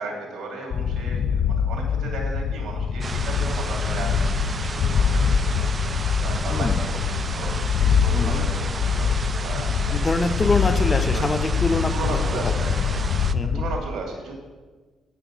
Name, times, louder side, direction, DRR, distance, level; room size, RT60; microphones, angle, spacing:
voice 1, 0.0-10.0 10.6-10.7 11.1-11.3 11.9-13.0 13.5-14.4, right 3 dB, 70° right, 0 dB, 2.6 m, -35 dB
sound 1, 0.7-13.8, left 6 dB, 60° left, 0.3 m, -24 dB
sound 2, 3.0-13.3, right 4 dB, 35° right, 0.4 m, -33 dB
voice 2, 6.5-6.8 8.1-8.4 9.9-12.5 13.3-13.7, left 3 dB, 25° left, 10 dB, 0.7 m, -25 dB
9.4 x 6.0 x 5.8 m, 1.4 s
cardioid pair, 90°, 0 cm